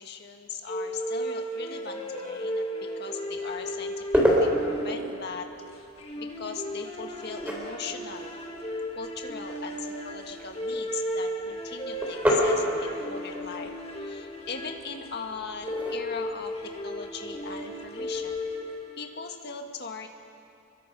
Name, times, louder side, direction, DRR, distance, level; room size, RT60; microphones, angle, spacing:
voice 1, 0.0-5.5 5.7-5.9 6.2-8.3 8.9-9.8 10.0-13.7 14.0-18.4 19.0-20.1, left 5 dB, 50° left, 4 dB, 1.7 m, -39 dB
sound 1, 0.7-19.2, equal, 30° left, 2.0 m, -35 dB
sound 2, 3.2-18.4, equal, 5° right, 3.8 m, -32 dB
28.0 x 22.5 x 5.4 m, 2.9 s
head